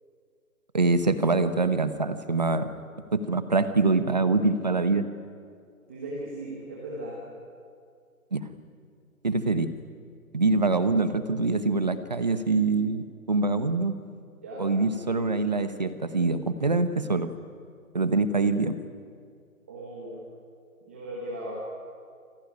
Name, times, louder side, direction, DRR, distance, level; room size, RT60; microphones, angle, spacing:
voice 1, 0.7-2.7 3.1-5.0 8.3-8.5 9.2-9.7 10.3-13.9 14.6-17.3 17.9-18.8, right 3 dB, 30° right, 11 dB, 1.0 m, -24 dB
voice 2, 5.9-7.2 14.4-14.7 19.7-20.2 20.8-21.5, right 1 dB, 10° right, -4 dB, 1.3 m, -37 dB
27.0 x 17.0 x 9.4 m, 2.3 s
hypercardioid pair, 175°, 44 cm